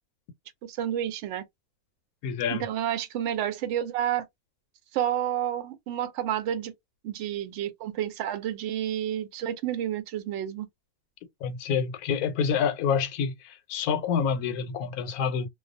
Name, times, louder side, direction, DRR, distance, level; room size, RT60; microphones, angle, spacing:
voice 1, 0.6-1.4 2.5-4.3 4.9-6.7 7.0-10.7, right 11 dB, 65° right, 0.7 m, -30 dB
voice 2, 2.2-2.6 11.4-15.5, left 7 dB, 90° left, 1.1 m, -27 dB
2.3 x 2.3 x 2.5 m
omnidirectional pair, 1.5 m